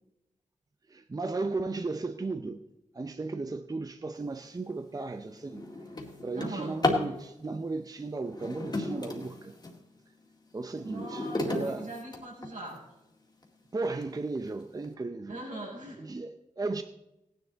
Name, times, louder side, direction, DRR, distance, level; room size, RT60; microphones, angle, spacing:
voice 1, 0.9-2.6 2.9-5.7 6.2-9.5 10.5-11.9 13.7-15.4 16.0-16.8, right 3 dB, 30° right, 0.6 m, -35 dB
Drawer open or close, 4.5-4.7 5.2-7.1 8.2-9.8 10.3-12.8 13.4-13.5 14.0-14.1 14.5-14.9, left 2 dB, 35° left, 2.1 m, -34 dB
voice 2, 6.3-6.8 10.8-12.8 15.3-16.0, right 1 dB, 75° right, 6.2 m, -40 dB
17.0 x 10.5 x 4.0 m
wide cardioid pair, 120°, 13 cm